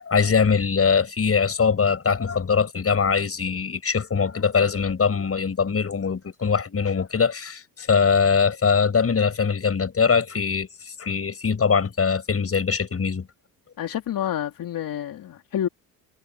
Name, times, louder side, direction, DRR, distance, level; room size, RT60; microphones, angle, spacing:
voice 1, 0.0-13.3, left 6 dB, 35° left, 6.3 m, -22 dB
voice 2, 13.8-15.7, left 10 dB, 55° left, 2.8 m, -28 dB
supercardioid pair, 70°, 40 cm